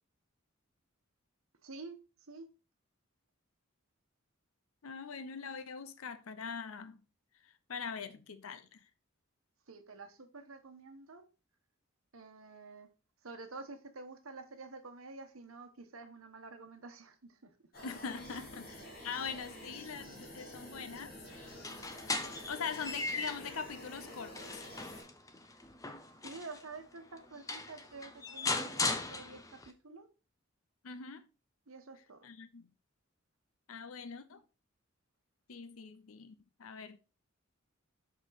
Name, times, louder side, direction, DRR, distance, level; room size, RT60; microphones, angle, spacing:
voice 1, 1.6-2.0 2.3-2.5 9.7-11.2 12.1-12.9 13.2-17.7 18.3-18.5 26.2-30.1 31.7-32.2, right 3 dB, 80° right, 1.1 m, -49 dB
voice 2, 4.8-7.0 7.4-8.8 17.8-21.2 22.5-24.6 30.8-31.2 32.2-32.7 33.7-34.4 35.5-37.0, left 6 dB, 85° left, 0.7 m, -42 dB
sound 1, 17.7-25.0, equal, 45° left, 2.3 m, -49 dB
sound 2, 21.5-23.6 24.1-26.6 27.2-27.3 27.5-29.7, left 3 dB, 15° left, 0.6 m, -38 dB
6.3 x 5.0 x 4.0 m
head